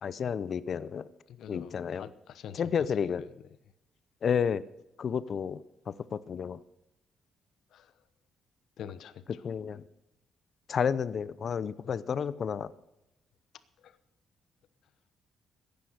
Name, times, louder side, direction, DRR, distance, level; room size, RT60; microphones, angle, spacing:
voice 1, 0.0-1.1 1.5-2.1 2.6-3.2 4.2-4.6 5.0-6.6 9.4-9.8 10.7-12.7, left 7 dB, 45° left, 17 dB, 0.5 m, -31 dB
voice 2, 1.3-3.4 7.7-8.0 8.8-9.5 11.8-11.9 13.8-14.0, left 9 dB, 70° left, 14 dB, 0.9 m, -46 dB
15.0 x 10.5 x 6.5 m, 0.89 s
cardioid pair, 135°, 0 cm